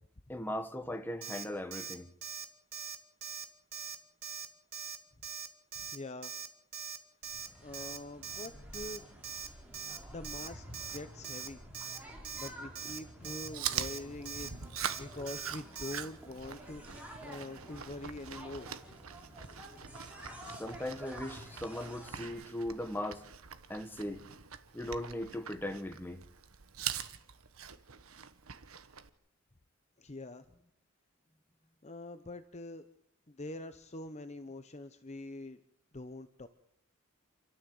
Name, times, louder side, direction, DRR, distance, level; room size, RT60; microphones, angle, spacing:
voice 1, 0.3-2.1 20.6-23.2 23.7-24.2 24.7-26.2, left 1 dB, 10° left, 1.5 m, -38 dB
Alarm, 1.2-1.4 1.7-1.9 2.2-2.4 2.7-3.0 3.2-3.4 3.7-3.9 4.2-4.5 4.7-5.0 5.2-5.5 5.7-6.0 6.2-6.5 6.7-7.0 7.2-7.5 7.7-8.0 8.2-8.5 8.7-9.0 9.2-9.5 9.7-10.0 10.2-10.5 10.7-11.0 11.2-11.5 11.7-12.0 12.2-12.5 12.7-13.0 13.2-13.5 13.7-14.0 14.2-14.5 14.8-15.0 15.3-15.5 15.7-16.0, right 7 dB, 45° right, 1.5 m, -42 dB
voice 2, 5.8-6.3 7.6-9.1 10.1-10.6 10.9-11.8 12.4-14.5 15.0-18.7 30.0-30.5 31.8-32.8 33.3-35.6 35.9-36.5, left 2 dB, 30° left, 0.9 m, -44 dB
sound 1, 7.2-22.3, equal, 5° right, 4.2 m, -51 dB
Chewing mastication, 13.2-29.1, right 8 dB, 80° right, 1.2 m, -43 dB
28.0 x 13.0 x 7.8 m
head